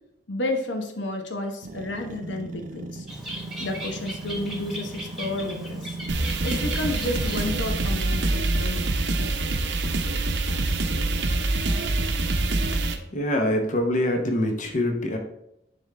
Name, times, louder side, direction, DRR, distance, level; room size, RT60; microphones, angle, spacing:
voice 1, 0.3-3.1 3.6-6.0 6.4-9.0, left 1 dB, 85° left, 4 dB, 0.9 m, -31 dB
sound 1, 1.6-8.4, right 2 dB, 45° right, 0.4 m, -38 dB
Bird, 3.1-7.9, equal, ahead, 1.3 m, -38 dB
sound 2, 6.1-13.0, right 2 dB, 75° right, 0.7 m, -25 dB
voice 2, 13.1-15.2, left 1 dB, 45° left, 3 dB, 0.8 m, -24 dB
10.0 x 3.5 x 3.3 m, 0.83 s
head